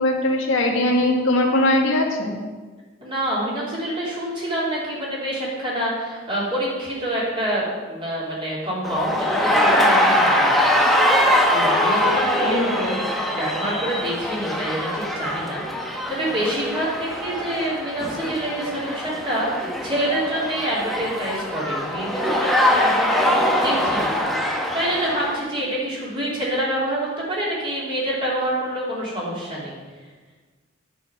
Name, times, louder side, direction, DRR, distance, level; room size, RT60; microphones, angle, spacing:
voice 1, 0.0-2.3 12.4-12.9, left 1 dB, 80° left, 1 dB, 1.6 m, -20 dB
voice 2, 3.0-10.6 11.5-13.0 13.3-29.8, right 1 dB, 25° right, -6 dB, 3.4 m, -27 dB
sound 1, 8.8-25.4, left 1 dB, ahead, 0.9 m, -22 dB
9.6 x 5.7 x 7.3 m, 1.4 s
head